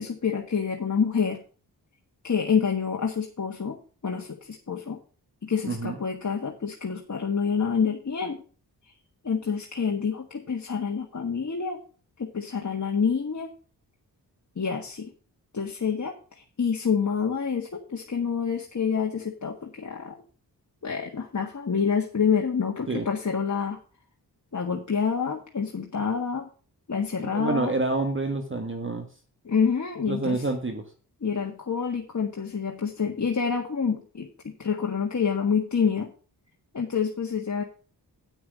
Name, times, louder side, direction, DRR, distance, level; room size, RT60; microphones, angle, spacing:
voice 1, 0.0-1.4 2.2-3.8 4.0-5.0 5.4-8.4 9.2-11.8 12.2-13.5 14.6-15.1 15.5-20.2 20.8-23.8 24.5-26.5 26.9-27.7 29.5-30.5 31.2-36.1 36.7-37.6, left 6 dB, 45° left, 1 dB, 1.7 m, -27 dB
voice 2, 5.6-6.0 22.9-23.0 27.3-29.1 30.1-30.8, right 3 dB, 30° right, 5 dB, 1.6 m, -28 dB
8.9 x 6.3 x 6.3 m, 0.38 s
cardioid pair, 65°, 40 cm